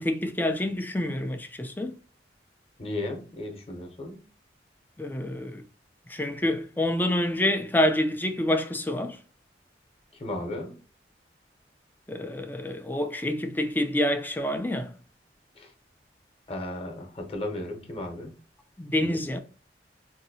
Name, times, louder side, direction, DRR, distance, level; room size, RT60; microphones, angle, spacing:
voice 1, 0.0-1.9 5.0-5.6 6.1-9.2 12.1-15.0 18.8-19.4, left 1 dB, 10° left, 0.3 m, -27 dB
voice 2, 2.8-4.2 10.2-10.8 15.6-15.7 16.5-18.3 19.0-19.2, left 1 dB, 35° left, 0.8 m, -35 dB
3.9 x 2.7 x 2.6 m
head